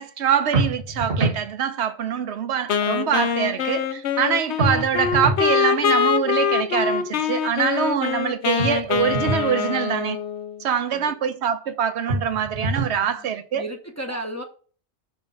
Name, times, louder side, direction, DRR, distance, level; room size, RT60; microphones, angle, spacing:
voice 1, 0.0-10.2 10.6-13.6, right 8 dB, 75° right, 1.0 m, -24 dB
sound 1, 0.5-1.4 4.6-5.5 8.6-9.5 12.1-13.0, right 2 dB, 55° right, 1.3 m, -25 dB
Wind instrument woodwind instrument, 2.7-10.6, left 7 dB, 80° left, 0.9 m, -24 dB
voice 2, 13.0-14.4, right 1 dB, 15° left, 0.7 m, -34 dB
5.7 x 3.3 x 5.3 m
omnidirectional pair, 1.1 m